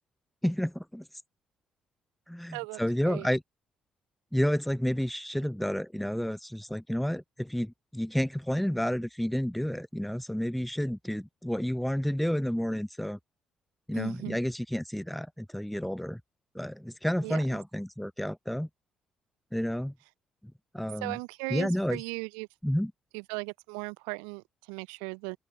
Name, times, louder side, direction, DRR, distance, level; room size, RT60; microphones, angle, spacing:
voice 1, 0.4-1.1 2.3-3.4 4.3-13.2 13.9-16.2 16.5-18.7 19.5-19.9 20.4-21.2 21.5-22.0 22.6-22.9, equal, 5° left, 4.6 m, -30 dB
voice 2, 2.5-3.3 13.9-14.4 17.2-17.6 21.0-22.5 23.1-25.4, right 40 dB or more, 75° right, 6.5 m, -37 dB
open air
figure-of-eight pair, 45°, 3 cm